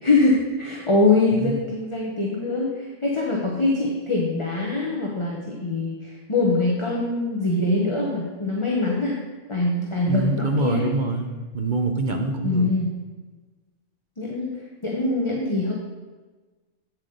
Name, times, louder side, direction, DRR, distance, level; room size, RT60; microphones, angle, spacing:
voice 1, 0.0-9.2 9.5-10.9 12.4-12.9 14.2-14.5 14.8-15.7, left 2 dB, 25° left, -3 dB, 1.0 m, -23 dB
voice 2, 10.1-12.7, right 2 dB, 45° right, 4 dB, 0.8 m, -25 dB
8.4 x 7.7 x 3.9 m, 1.3 s
omnidirectional pair, 1.3 m